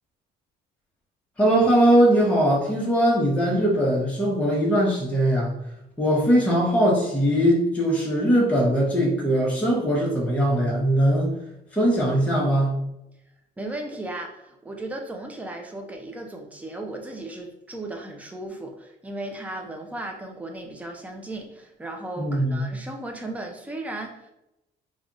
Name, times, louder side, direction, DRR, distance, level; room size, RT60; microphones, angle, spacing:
voice 1, 1.4-5.5 6.0-11.4 11.7-12.8 22.2-22.7, equal, 10° left, -4 dB, 1.0 m, -20 dB
voice 2, 13.6-24.3, right 2 dB, 10° right, 2 dB, 0.6 m, -36 dB
3.4 x 2.4 x 3.9 m, 0.86 s
cardioid pair, 110°, 17 cm